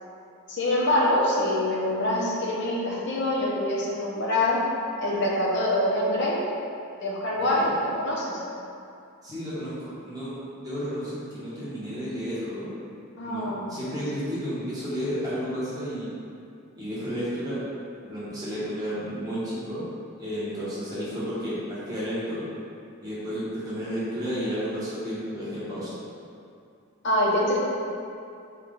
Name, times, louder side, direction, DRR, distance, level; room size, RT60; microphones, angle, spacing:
voice 1, 0.5-4.6 5.0-6.4 7.0-8.4 13.2-13.7 27.0-27.6, left 1 dB, 55° left, -5 dB, 0.8 m, -25 dB
voice 2, 7.4-7.7 9.2-12.7 13.2-16.1 16.8-17.6 18.1-19.8 20.2-22.4 23.0-26.0, equal, 15° right, -11 dB, 1.2 m, -32 dB
5.7 x 2.4 x 3.7 m, 2.5 s
head